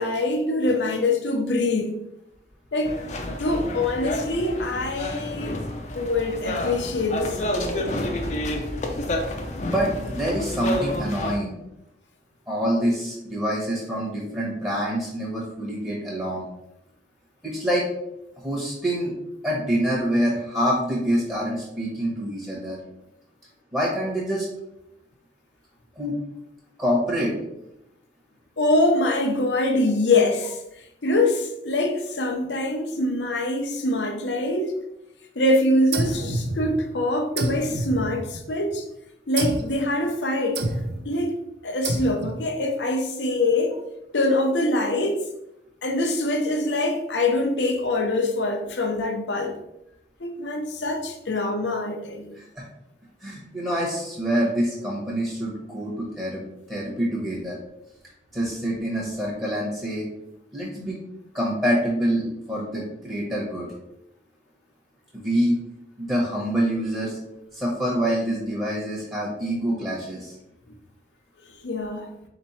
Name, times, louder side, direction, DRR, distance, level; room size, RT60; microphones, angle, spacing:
voice 1, 0.0-2.0 2.7-2.9 3.2-5.6 5.9-7.9 28.6-30.6 31.0-34.7 35.3-38.8 39.3-40.7 41.0-41.4 41.6-43.8 44.1-45.2 45.8-49.6 50.2-52.4 71.6-72.1, left 2 dB, 80° left, 0.7 m, -24 dB
sound 1, 2.8-11.3, left 1 dB, 40° left, 0.6 m, -29 dB
voice 2, 9.6-11.6 12.5-16.4 17.4-17.9 18.4-19.1 19.4-22.8 23.7-24.5 26.0-26.1 26.8-27.3 52.3-52.6 53.2-56.4 56.7-57.6 58.3-60.1 60.5-61.0 61.3-63.7 65.1-65.6 66.0-67.2 67.5-70.4, equal, 15° right, 1.0 m, -26 dB
sound 2, 35.9-37.0 37.4-38.7 39.4-39.8 40.5-41.1 41.8-42.5, right 2 dB, 65° right, 0.5 m, -28 dB
4.3 x 3.0 x 4.1 m
head